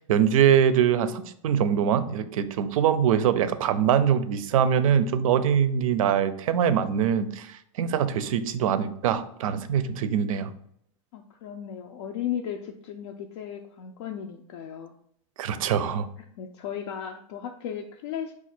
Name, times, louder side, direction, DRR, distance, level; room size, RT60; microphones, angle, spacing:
voice 1, 0.0-10.5 15.4-16.1, right 8 dB, 85° right, 12 dB, 0.5 m, -23 dB
voice 2, 11.1-14.9 16.2-18.3, left 9 dB, 55° left, 3 dB, 0.4 m, -35 dB
4.9 x 2.3 x 4.3 m, 0.71 s
supercardioid pair, 170°, 17 cm